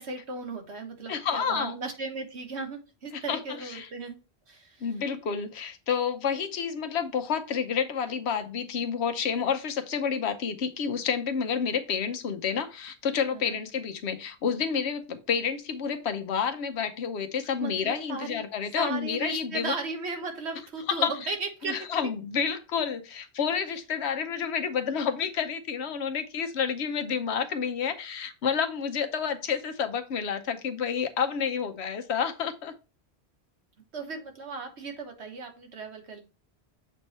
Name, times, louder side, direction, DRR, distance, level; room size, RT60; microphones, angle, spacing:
voice 1, 0.0-4.2 4.5-4.9 13.3-13.6 17.6-18.4 18.8-21.7 33.9-36.2, right 3 dB, 85° right, 4 dB, 1.5 m, -36 dB
voice 2, 1.1-1.8 3.1-3.9 4.8-19.7 20.9-21.3 21.6-32.7, left 7 dB, 80° left, 8 dB, 1.0 m, -29 dB
7.4 x 3.4 x 4.1 m, 0.32 s
omnidirectional pair, 1.1 m